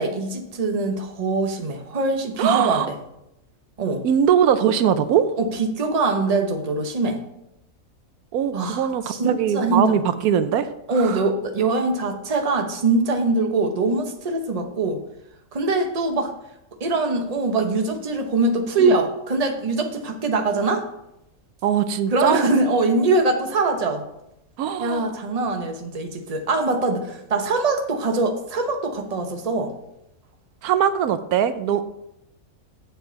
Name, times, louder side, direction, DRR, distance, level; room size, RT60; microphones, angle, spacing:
voice 1, 0.0-2.9 3.8-4.0 5.4-7.2 8.5-10.0 10.9-15.0 15.5-16.3 16.8-20.8 22.1-24.0 24.8-29.7, right 3 dB, 30° right, 5 dB, 0.9 m, -23 dB
voice 2, 2.4-2.9 4.0-5.3 8.3-11.3 18.8-18.9 21.6-22.4 24.6-25.1 30.6-31.8, right 8 dB, 90° right, 12 dB, 1.1 m, -21 dB
8.9 x 7.4 x 3.9 m, 0.84 s
omnidirectional pair, 1.5 m